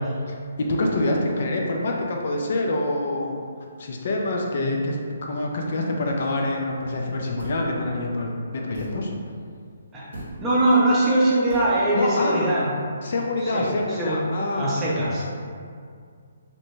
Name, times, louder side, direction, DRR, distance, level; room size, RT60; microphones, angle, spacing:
voice 1, 0.3-3.4 3.8-5.0 5.2-9.1 11.9-12.5 13.0-14.7, left 2 dB, 55° left, 0 dB, 0.3 m, -26 dB
sound 1, 7.4-7.7 8.7-9.0 10.1-10.4 11.5-11.8, right 1 dB, 65° right, 0.7 m, -38 dB
voice 2, 10.4-12.7 13.4-14.2 14.5-15.2, right 1 dB, 15° right, -7 dB, 0.5 m, -22 dB
2.7 x 2.1 x 2.9 m, 2.2 s
hypercardioid pair, 160°, 0 cm